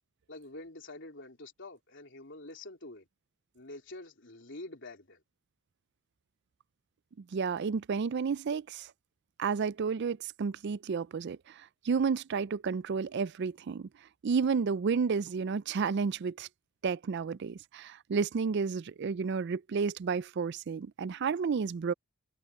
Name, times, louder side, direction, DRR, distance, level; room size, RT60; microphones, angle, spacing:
voice 1, 0.3-3.1 3.5-5.2, left 2 dB, 55° left, 3.9 m, -46 dB
voice 2, 7.3-8.9 9.4-13.9 14.2-16.5 16.8-21.9, right 5 dB, 50° right, 0.4 m, -31 dB
head